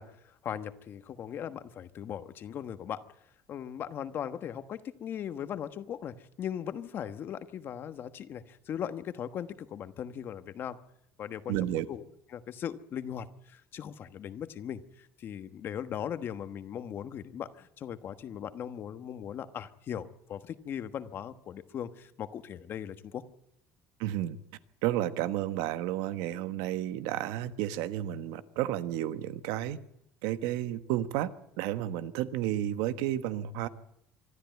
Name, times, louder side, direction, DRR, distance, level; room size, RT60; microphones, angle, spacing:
voice 1, 0.0-3.0 3.5-10.8 11.2-12.0 12.3-23.2, left 9 dB, 40° left, 11 dB, 1.2 m, -39 dB
voice 2, 11.5-11.9 24.0-24.4 24.8-29.8 30.2-31.3 31.6-33.7, right 13 dB, 90° right, 12 dB, 1.3 m, -31 dB
25.0 x 13.0 x 9.2 m, 0.76 s
cardioid pair, 150°, 6 cm